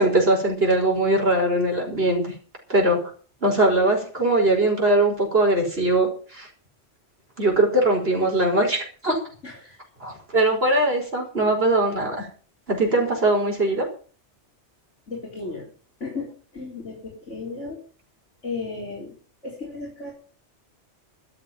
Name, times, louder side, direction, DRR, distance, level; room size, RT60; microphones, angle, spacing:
voice 1, 0.0-2.3 2.7-3.1 3.4-6.5 7.4-9.2 10.0-12.3 12.7-13.9, right 2 dB, 55° right, 1 dB, 5.6 m, -21 dB
voice 2, 15.1-15.7 16.0-16.9 17.3-17.8 18.4-19.1 19.4-20.1, left 4 dB, 75° left, -3 dB, 4.5 m, -34 dB
13.0 x 7.8 x 9.2 m, 0.40 s
omnidirectional pair, 1.2 m